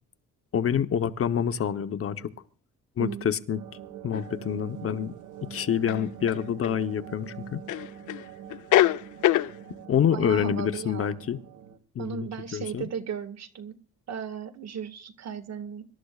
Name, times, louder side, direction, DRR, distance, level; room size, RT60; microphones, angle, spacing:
voice 1, 0.5-2.3 3.0-3.6 4.0-5.1 5.5-7.6 9.9-11.4 11.9-12.9, left 8 dB, 50° left, 1.0 m, -27 dB
voice 2, 3.0-3.3 10.1-11.2 12.0-13.8 14.1-15.9, right 7 dB, 60° right, 1.8 m, -36 dB
sound 1, 3.5-11.8, right 8 dB, 80° right, 1.8 m, -44 dB
sound 2, 4.1-4.2 5.9-6.8 7.7-8.2 8.5-9.5, left 14 dB, 80° left, 0.7 m, -23 dB
25.5 x 13.0 x 2.4 m
cardioid pair, 90°, 30 cm